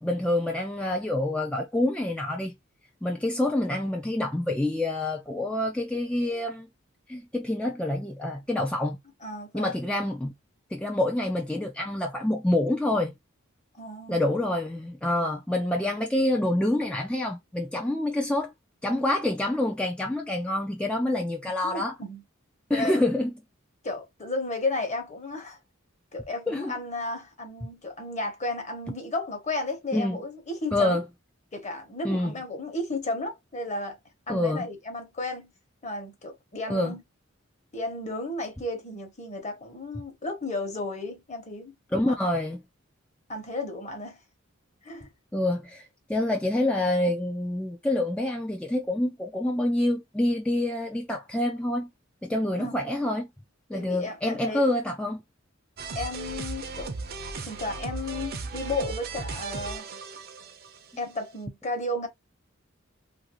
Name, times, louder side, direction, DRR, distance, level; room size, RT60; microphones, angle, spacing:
voice 1, 0.0-2.5 3.0-6.7 7.1-9.0 9.5-10.3 10.7-13.1 14.1-18.5 18.8-21.9 22.7-23.3 26.5-26.7 29.9-30.2 30.7-31.0 32.0-32.3 34.3-34.6 36.7-36.9 41.9-42.6 45.3-51.9 52.2-53.3 53.7-55.2, left 1 dB, 5° left, 0.3 m, -27 dB
voice 2, 9.2-9.7 13.7-14.2 21.6-22.2 22.7-23.0 23.8-25.6 26.1-31.0 31.5-34.0 34.3-35.5 35.8-37.0 37.7-41.7 43.3-44.2 44.8-45.1 52.6-52.7 53.7-54.7 55.9-56.9 57.4-59.9 61.0-62.1, left 2 dB, 35° left, 1.0 m, -33 dB
sound 1, 55.8-60.9, right 4 dB, 50° right, 0.6 m, -36 dB
2.8 x 2.6 x 2.9 m
head